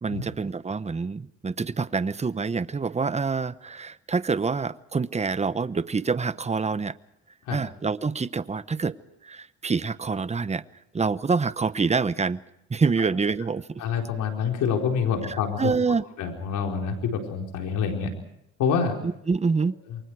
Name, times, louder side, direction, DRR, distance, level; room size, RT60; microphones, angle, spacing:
voice 1, 0.0-6.9 7.5-9.0 9.2-10.6 10.9-12.4 12.7-13.8 15.2-16.0 19.0-19.8, right 4 dB, 20° right, 0.9 m, -26 dB
voice 2, 13.8-15.7 16.2-18.1 18.6-19.0 19.9-20.0, left 6 dB, 90° left, 4.5 m, -26 dB
28.5 x 23.5 x 4.8 m
cardioid pair, 90°, 30 cm